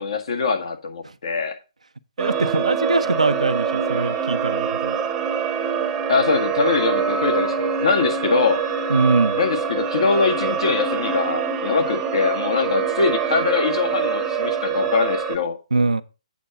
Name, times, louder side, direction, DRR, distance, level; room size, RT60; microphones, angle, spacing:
voice 1, 0.0-1.6 6.1-8.6 9.4-15.6, left 5 dB, 60° left, 1.7 m, -22 dB
sound 1, 2.2-15.4, right 6 dB, 15° right, 0.9 m, -24 dB
voice 2, 2.2-5.0 8.9-9.4 15.7-16.0, right 3 dB, 85° right, 0.7 m, -22 dB
8.4 x 3.7 x 6.7 m
figure-of-eight pair, 140°, 3 cm